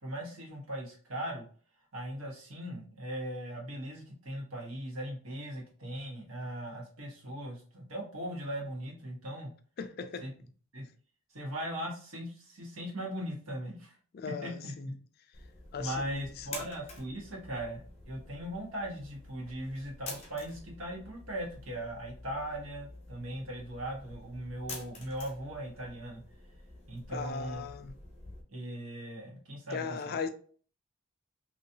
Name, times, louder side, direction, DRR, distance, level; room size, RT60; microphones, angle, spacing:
voice 1, 0.0-1.5 1.9-9.5 10.2-10.3 10.7-10.9 11.3-14.0 14.4-14.9 15.8-26.2 26.9-27.6 28.5-30.2, right 1 dB, 80° right, 1.3 m, -39 dB
voice 2, 9.8-10.3 14.1-14.9 15.7-16.5 27.1-27.9 29.7-30.3, left 5 dB, 45° left, 0.3 m, -38 dB
sound 1, 15.3-28.4, left 3 dB, 30° left, 0.8 m, -49 dB
3.0 x 2.7 x 2.7 m
head